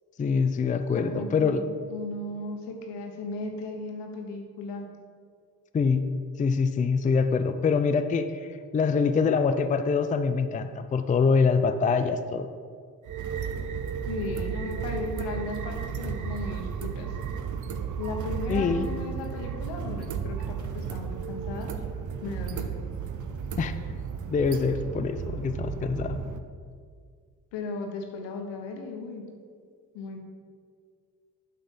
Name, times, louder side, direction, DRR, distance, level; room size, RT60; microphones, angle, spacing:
voice 1, 0.2-1.6 5.7-6.1 6.4-12.5 18.5-18.9 23.6-23.7 24.3-26.2, left 5 dB, 20° left, 9 dB, 0.4 m, -25 dB
voice 2, 0.9-4.8 14.1-17.2 18.0-21.7 22.2-22.7 27.5-29.2 29.9-30.2, left 3 dB, 75° left, 3 dB, 1.1 m, -36 dB
sound 1, 13.0-26.4, right 7 dB, 45° right, 0.7 m, -34 dB
8.3 x 5.5 x 4.1 m, 2.1 s
hypercardioid pair, 45°, 43 cm